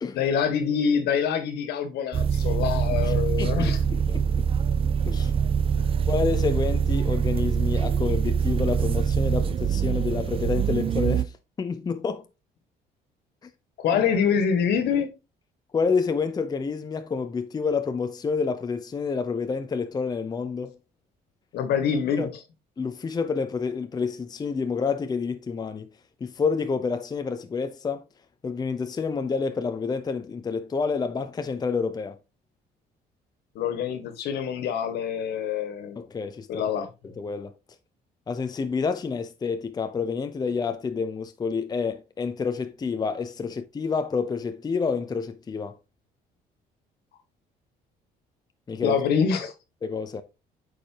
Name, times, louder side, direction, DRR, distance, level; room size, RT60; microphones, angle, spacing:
voice 1, 0.1-3.9 5.8-5.9 13.8-15.1 21.5-22.3 33.6-36.0 36.5-36.9 48.8-49.5, left 7 dB, 75° left, 1.7 m, -25 dB
sound 1, 2.1-11.2, right 7 dB, 35° right, 0.4 m, -24 dB
voice 2, 3.0-4.4 5.1-5.3 6.1-12.2 13.4-13.5 13.9-14.0 15.7-20.8 22.2-22.3 22.8-25.9 26.2-28.1 28.4-32.2 36.0-37.6 38.3-45.8 48.7-49.0 49.8-50.2, left 5 dB, 25° left, 0.6 m, -29 dB
8.4 x 4.9 x 2.8 m
cardioid pair, 110°, 17 cm